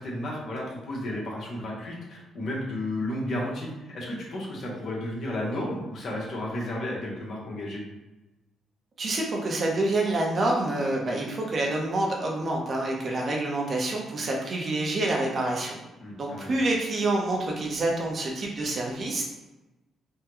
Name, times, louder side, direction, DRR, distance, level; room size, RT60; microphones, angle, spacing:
voice 1, 0.0-7.8 16.0-16.6, left 1 dB, 60° left, -3 dB, 1.1 m, -33 dB
voice 2, 9.0-15.8 16.2-19.2, right 2 dB, 45° right, -1 dB, 0.7 m, -27 dB
3.4 x 2.2 x 3.0 m, 1.0 s
cardioid pair, 90°, 0 cm